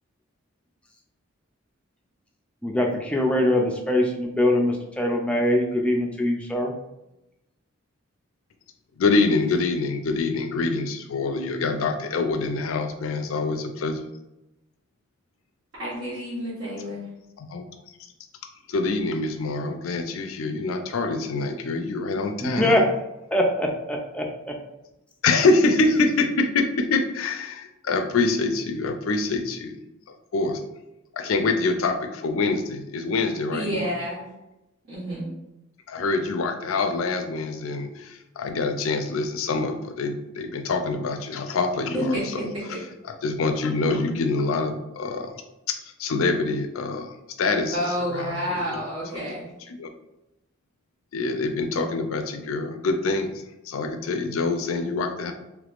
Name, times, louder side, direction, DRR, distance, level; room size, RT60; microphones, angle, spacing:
voice 1, 2.6-6.7 22.4-22.9 23.3-24.6, left 1 dB, 5° left, 0 dB, 0.3 m, -23 dB
voice 2, 9.0-14.0 17.4-17.6 18.7-22.8 25.2-29.8 30.1-30.6 31.1-33.9 35.9-42.4 42.7-42.8 43.2-45.4 45.8-48.8 49.1-49.3 49.7-49.9 51.1-55.3, left 3 dB, 75° left, 6 dB, 0.4 m, -25 dB
voice 3, 15.8-17.0 33.5-34.2 34.8-35.3 41.9-42.8 47.7-49.6, equal, 70° right, -12 dB, 1.4 m, -29 dB
3.4 x 3.1 x 2.4 m, 0.92 s
head